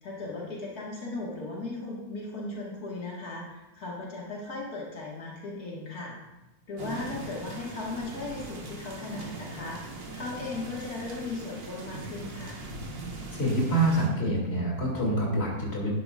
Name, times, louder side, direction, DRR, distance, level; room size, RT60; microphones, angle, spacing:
voice 1, 0.0-6.1 6.7-12.6, left 2 dB, 90° left, -4 dB, 2.3 m, -37 dB
sound 1, 6.8-14.1, right 2 dB, 60° right, 1.8 m, -41 dB
voice 2, 13.3-15.9, right 1 dB, 40° left, -3 dB, 3.1 m, -26 dB
12.0 x 11.0 x 2.5 m, 1.0 s
omnidirectional pair, 1.6 m